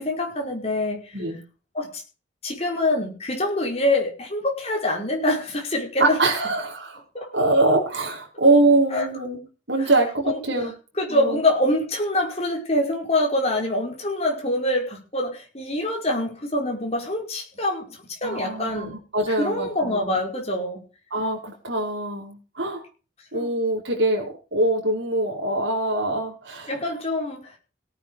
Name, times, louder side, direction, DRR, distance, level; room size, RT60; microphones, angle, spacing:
voice 1, 0.0-1.1 1.7-2.0 2.4-6.2 7.1-7.3 8.9-9.1 9.8-9.9 10.3-10.4 11.0-19.0 19.3-20.8 23.3-23.5 26.7-27.5, left 1 dB, 30° left, 1 dB, 5.2 m, -25 dB
voice 2, 6.0-7.0 7.3-10.7 11.1-11.4 18.2-20.2 21.1-22.8 23.3-26.7, right 2 dB, 65° right, 0 dB, 5.1 m, -23 dB
17.5 x 9.9 x 4.9 m, 0.35 s
head